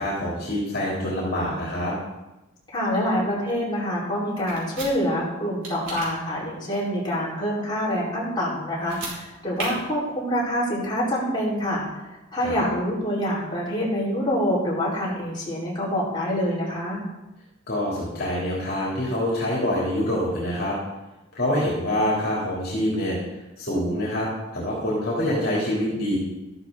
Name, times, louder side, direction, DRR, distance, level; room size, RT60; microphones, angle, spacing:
voice 1, 0.0-1.9 12.4-12.7 17.7-20.8 21.3-26.2, left 1 dB, 50° left, -5 dB, 3.3 m, -26 dB
voice 2, 2.7-17.0, equal, 20° left, -7 dB, 4.7 m, -26 dB
sound 1, 4.5-4.9 5.6-6.1 8.8-9.2 9.6-9.7, right 3 dB, 70° right, 4.7 m, -33 dB
13.5 x 12.0 x 4.0 m, 1.0 s
head